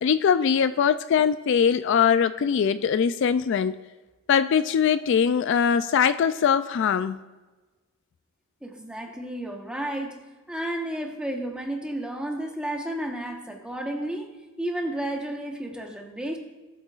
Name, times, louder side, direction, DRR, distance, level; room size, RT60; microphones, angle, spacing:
voice 1, 0.0-3.8 4.3-7.2, left 7 dB, 60° left, 13 dB, 0.3 m, -22 dB
voice 2, 8.6-10.2 10.5-14.3 14.6-16.4, right 1 dB, 5° right, 2 dB, 1.2 m, -32 dB
18.5 x 8.5 x 2.4 m, 1.2 s
head